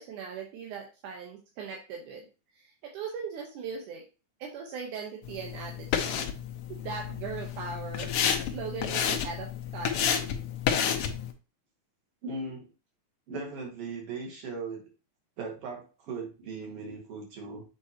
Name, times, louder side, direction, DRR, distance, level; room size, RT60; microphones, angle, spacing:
voice 1, 0.0-2.3 2.6-4.0 4.4-6.2 6.7-10.2, right 6 dB, 85° right, 0 dB, 2.6 m, -39 dB
sound 1, 5.2-11.3, left 8 dB, 80° left, 1.3 m, -30 dB
voice 2, 12.2-12.7 13.3-14.8 15.4-17.6, right 3 dB, 55° right, 0 dB, 2.6 m, -38 dB
7.1 x 5.0 x 2.8 m, 0.32 s
omnidirectional pair, 3.5 m